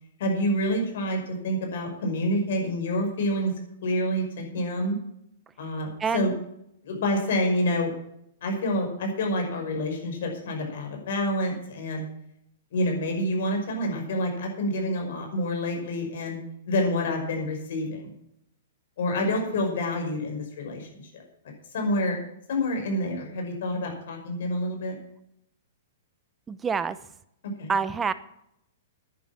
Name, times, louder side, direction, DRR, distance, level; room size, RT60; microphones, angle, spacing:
voice 1, 0.2-3.5 3.8-5.0 5.6-6.3 6.8-7.9 8.4-12.0 12.7-16.4 16.7-18.1 19.0-20.9 21.1-21.2 21.7-22.2 22.5-25.0 27.6-27.8, left 1 dB, 65° left, 2 dB, 5.7 m, -27 dB
voice 2, 6.0-6.4 26.5-27.0 27.7-28.1, right 5 dB, 15° right, 14 dB, 0.8 m, -27 dB
10.5 x 9.8 x 7.2 m, 0.76 s
hypercardioid pair, 135°, 0 cm